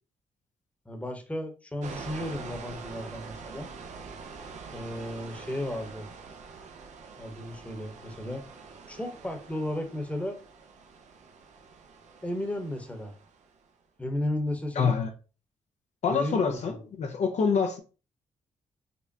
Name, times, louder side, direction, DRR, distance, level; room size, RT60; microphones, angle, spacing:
voice 1, 0.9-3.7 4.7-6.1 7.2-8.4 8.9-10.4 12.2-13.1 14.0-15.0 16.0-16.8, left 1 dB, 10° left, 1.0 m, -34 dB
sound 1, 1.8-13.6, right 5 dB, 65° right, 0.6 m, -45 dB
voice 2, 14.8-15.1 16.0-17.8, left 5 dB, 60° left, 0.6 m, -26 dB
5.2 x 2.1 x 2.7 m
supercardioid pair, 60°, 13 cm